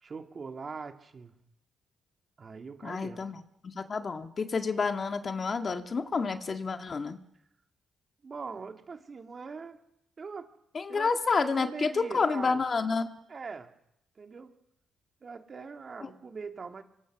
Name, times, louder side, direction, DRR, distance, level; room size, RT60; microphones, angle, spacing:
voice 1, 0.0-1.4 2.4-3.2 8.2-9.8 10.2-10.5 10.9-11.1 11.4-12.6 13.3-13.7 14.2-14.5 15.2-16.8, right 5 dB, 40° right, 5 dB, 2.5 m, -42 dB
voice 2, 2.8-7.2 10.7-13.1 16.0-16.1, left 4 dB, 40° left, 6 dB, 1.9 m, -29 dB
25.5 x 23.5 x 6.2 m, 0.77 s
cardioid pair, 90°, 0 cm